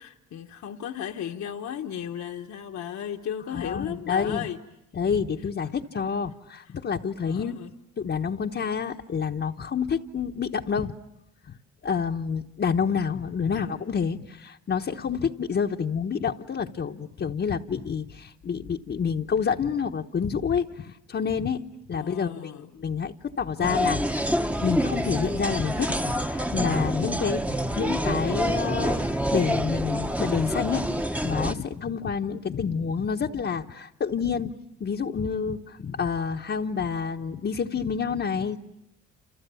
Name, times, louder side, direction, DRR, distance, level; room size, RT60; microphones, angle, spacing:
voice 1, 0.0-4.6 7.2-7.7 13.5-13.8 21.9-22.7, left 9 dB, 65° left, 4 dB, 1.3 m, -35 dB
voice 2, 3.5-4.5 4.9-7.6 8.0-10.9 11.5-11.6 11.8-34.5 34.8-38.6, left 6 dB, 40° left, 1 dB, 1.0 m, -28 dB
sound 1, 23.6-31.5, equal, 5° right, 1.0 m, -27 dB
29.5 x 28.5 x 7.0 m, 0.85 s
cardioid pair, 90°, 30 cm